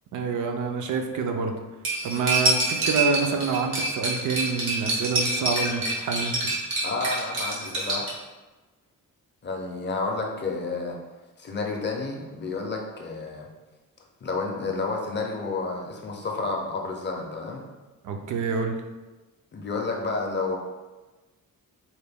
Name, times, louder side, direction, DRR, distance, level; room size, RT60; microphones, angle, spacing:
voice 1, 0.1-1.6 2.0-6.5 18.0-18.8, right 4 dB, 60° right, 4 dB, 0.5 m, -27 dB
Cutlery silverware, 1.8-8.1, right 2 dB, 80° right, 1.1 m, -26 dB
voice 2, 6.8-8.1 9.4-11.0 11.4-13.5 14.2-17.6 19.5-20.6, left 3 dB, 35° left, 0 dB, 0.4 m, -30 dB
4.1 x 2.1 x 3.4 m, 1.2 s
wide cardioid pair, 165°, 34 cm